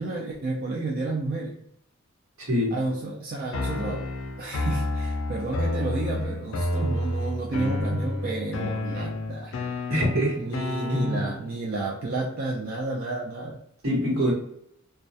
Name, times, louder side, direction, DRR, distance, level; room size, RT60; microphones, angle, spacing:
voice 1, 0.0-1.6 2.7-4.1 4.4-9.5 10.4-13.6 14.2-14.3, right 2 dB, 45° right, -3 dB, 0.4 m, -31 dB
voice 2, 2.4-2.7 9.9-10.4 10.9-11.3 13.8-14.3, equal, 75° right, -4 dB, 1.1 m, -24 dB
sound 1, 3.5-11.5, left 2 dB, 65° left, 0.4 m, -30 dB
2.2 x 2.1 x 2.6 m, 0.71 s
head